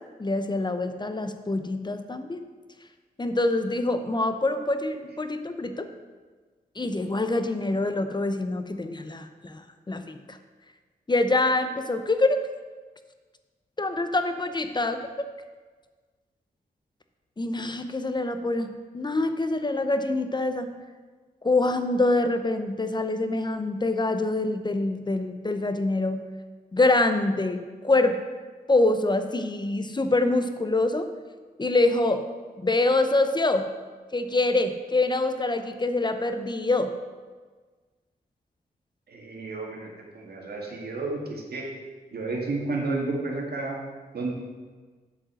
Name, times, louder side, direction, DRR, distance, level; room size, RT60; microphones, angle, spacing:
voice 1, 0.2-2.4 3.2-5.9 6.8-10.4 11.1-12.4 13.8-15.1 17.4-20.7 21.4-26.2 26.7-28.2 28.7-31.1 31.6-32.2 32.6-33.7 34.1-36.9, left 2 dB, 25° left, 8 dB, 0.7 m, -25 dB
voice 2, 39.1-39.9 40.1-41.7 42.1-43.8 44.1-44.3, right 3 dB, 75° right, -1 dB, 2.2 m, -31 dB
8.3 x 5.2 x 7.7 m, 1.4 s
wide cardioid pair, 85°, 16 cm